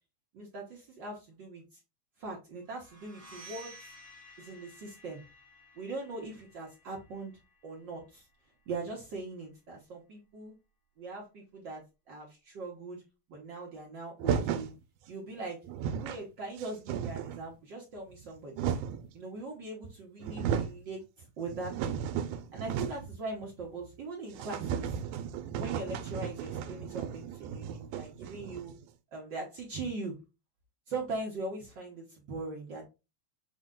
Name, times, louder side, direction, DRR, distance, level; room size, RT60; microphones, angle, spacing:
voice 1, 0.3-1.8 2.2-3.8 4.4-5.2 5.8-7.3 7.6-8.3 8.7-10.5 11.0-13.0 13.3-14.7 15.1-18.6 19.1-22.0 22.5-25.0 25.6-28.7 29.1-30.2 30.9-32.8, right 3 dB, 70° right, -2 dB, 1.0 m, -41 dB
sound 1, 2.8-8.5, equal, 10° right, 0.6 m, -54 dB
sound 2, 14.2-14.7 15.4-15.5 15.6-16.2 16.6-17.4 18.1-19.1 19.8-19.9 20.2-20.8 21.2-23.2 23.4-23.5 23.8-23.9 24.3-28.8, right 8 dB, 90° right, 2.0 m, -35 dB
6.3 x 2.2 x 3.6 m, 0.27 s
omnidirectional pair, 3.4 m